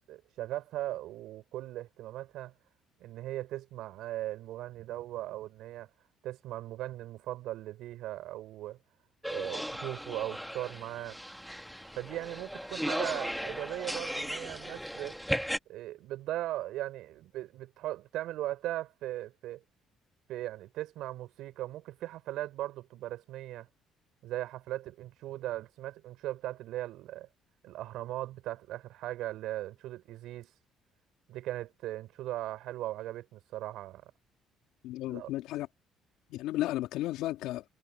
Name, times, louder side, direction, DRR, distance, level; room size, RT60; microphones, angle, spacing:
voice 1, 0.1-2.5 3.0-5.9 6.2-8.8 9.3-11.2 12.0-15.2 15.7-19.6 20.3-23.7 24.2-27.3 27.6-30.5 31.3-34.1 35.1-35.3, right 14 dB, 75° right, 5.5 m, -38 dB
sound 1, 9.2-15.6, equal, ahead, 2.5 m, -36 dB
voice 2, 34.8-35.7 36.3-37.6, left 15 dB, 75° left, 2.9 m, -33 dB
hypercardioid pair, 60°, 0 cm